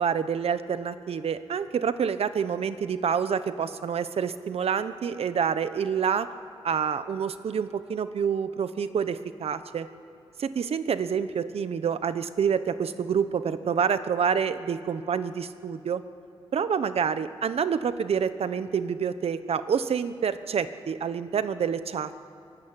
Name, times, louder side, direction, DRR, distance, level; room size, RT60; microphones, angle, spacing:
voice 1, 0.0-6.3 6.6-9.9 10.4-16.0 16.5-22.2, right 7 dB, 80° right, 12 dB, 1.0 m, -27 dB
24.5 x 21.5 x 10.0 m, 2.8 s
wide cardioid pair, 165°, 10 cm